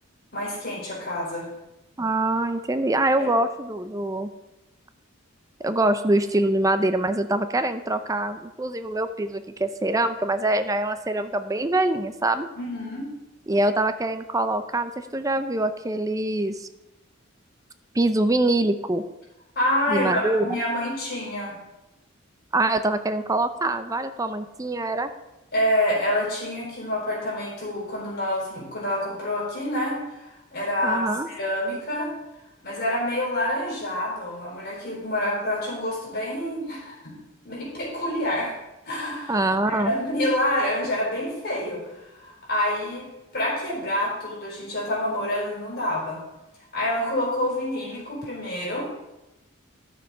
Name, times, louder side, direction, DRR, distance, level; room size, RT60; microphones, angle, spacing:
voice 1, 0.3-1.4 3.2-3.3 12.5-13.1 19.5-21.5 25.5-32.1 32.6-37.1 37.4-38.5 38.9-43.1 43.3-46.2 46.7-48.9, left 1 dB, 50° left, -5 dB, 4.4 m, -27 dB
voice 2, 2.0-4.3 5.6-12.5 13.5-16.7 17.9-19.0 19.9-20.6 22.5-25.1 30.8-31.3 39.3-39.9, right 2 dB, 15° right, 10 dB, 0.5 m, -24 dB
11.5 x 7.0 x 4.9 m, 0.99 s
head